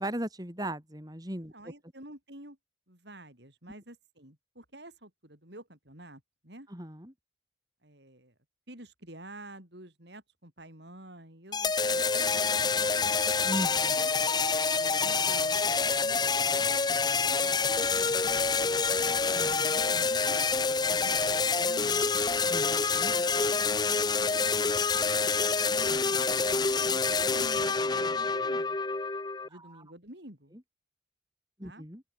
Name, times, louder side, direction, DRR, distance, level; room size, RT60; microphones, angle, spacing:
voice 1, 0.0-1.5 6.7-7.1 13.4-13.9 19.3-19.8 22.5-23.1 29.5-29.8 31.6-32.0, right 1 dB, 20° right, 6.5 m, -37 dB
voice 2, 1.5-2.6 2.9-6.7 7.8-8.3 8.7-13.2 13.8-14.0 14.8-18.2 19.3-19.6 19.9-22.2 24.2-24.6 25.7-26.3 26.8-28.8 29.4-30.6 31.6-31.9, right 1 dB, 60° right, 7.2 m, -49 dB
sound 1, 11.5-29.5, left 4 dB, 20° left, 0.9 m, -27 dB
open air
head